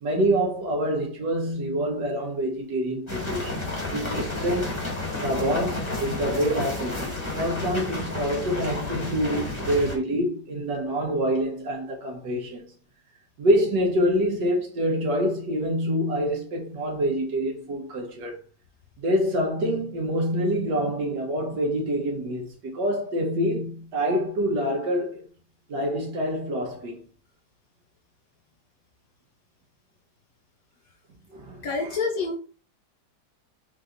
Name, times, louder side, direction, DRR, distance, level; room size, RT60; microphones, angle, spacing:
voice 1, 0.0-3.6 3.9-4.9 5.2-12.7 13.4-18.3 19.0-25.2 25.7-27.0 31.3-32.0, equal, 70° right, 1.6 m, -26 dB
sound 1, 3.1-10.0, left 2 dB, 15° left, 1.4 m, -31 dB
voice 2, 31.6-32.4, left 4 dB, 65° left, 0.9 m, -27 dB
4.0 x 3.7 x 2.5 m
omnidirectional pair, 2.0 m